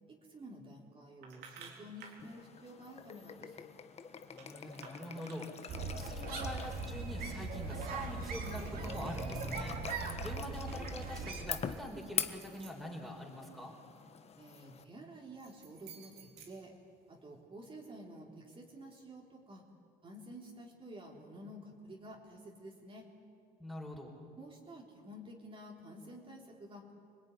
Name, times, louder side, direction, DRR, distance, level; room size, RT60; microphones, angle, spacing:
voice 1, 0.1-3.7 14.4-16.8 17.1-19.6 20.0-23.1 24.4-26.9, right 1 dB, 30° right, -1 dB, 3.7 m, -51 dB
sound 1, 1.2-2.2 4.4-5.9 8.2-9.8 10.1-10.6 11.3-13.6 15.2-17.3, right 6 dB, 80° right, 4.2 m, -56 dB
sound 2, 2.2-14.8, left 7 dB, 40° left, 1.3 m, -45 dB
voice 2, 4.3-13.7 23.6-24.1, equal, ahead, -1 dB, 4.6 m, -45 dB
sound 3, 5.7-11.4, right 3 dB, 60° right, 4.2 m, -39 dB
26.5 x 19.5 x 9.8 m, 2.3 s
cardioid pair, 110°, 17 cm